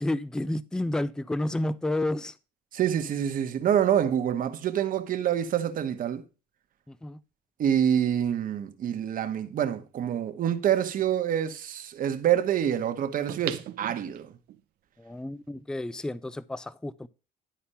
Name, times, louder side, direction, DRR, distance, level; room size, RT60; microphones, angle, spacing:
voice 1, 0.0-2.3 6.9-7.2 15.0-17.1, left 1 dB, 5° left, 0.4 m, -30 dB
voice 2, 2.7-6.2 7.6-14.3, right 9 dB, 55° right, 1.1 m, -26 dB
sound 1, 9.7-9.8 13.3-14.6 15.1-15.2, right 13 dB, 75° right, 0.7 m, -38 dB
11.5 x 4.3 x 5.5 m
cardioid pair, 110°, 17 cm